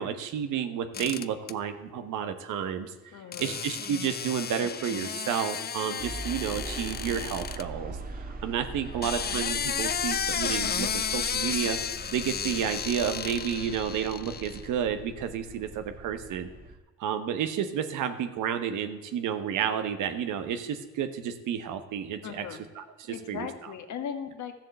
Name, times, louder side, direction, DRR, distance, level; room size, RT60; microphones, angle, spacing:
voice 1, 0.0-2.9 3.4-11.8 12.1-16.5 17.0-22.5 22.8-23.5, right 8 dB, 85° right, 8 dB, 1.3 m, -31 dB
sound 1, 0.9-1.5 3.3-7.6 8.8-14.7, left 7 dB, 35° left, 0.6 m, -33 dB
voice 2, 3.1-3.6 22.2-22.6 23.1-24.5, left 7 dB, 70° left, 6 dB, 1.6 m, -38 dB
sound 2, 6.0-16.8, right 3 dB, 30° right, 1.5 m, -41 dB
13.5 x 7.5 x 7.8 m, 1.2 s
cardioid pair, 90°, 30 cm